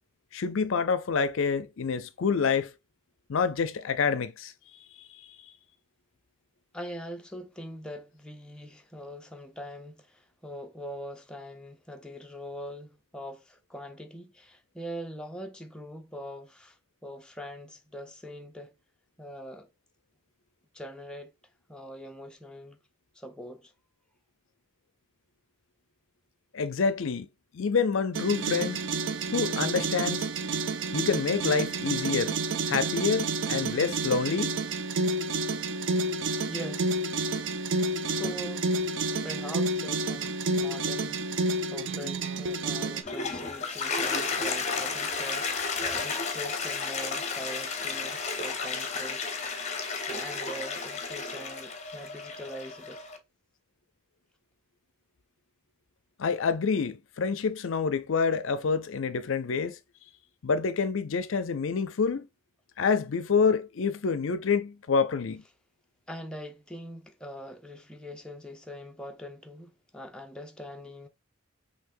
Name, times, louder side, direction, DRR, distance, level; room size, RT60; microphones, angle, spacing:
voice 1, 0.3-2.7 3.3-4.5 5.0-5.4 26.5-27.3 27.5-28.8 29.3-30.3 30.9-32.4 32.7-34.5 56.2-59.8 60.4-62.3 62.8-65.4, left 5 dB, 60° left, 0.5 m, -27 dB
voice 2, 6.7-18.7 19.2-19.7 20.7-21.3 21.7-22.8 23.1-23.7 36.3-36.9 38.1-38.7 39.1-49.5 50.1-53.0 66.1-71.1, equal, 5° left, 0.5 m, -42 dB
sound 1, 28.1-43.0, right 3 dB, 55° right, 0.5 m, -30 dB
Toilet flush, 42.8-53.2, left 4 dB, 30° left, 0.8 m, -32 dB
5.7 x 3.2 x 2.6 m
head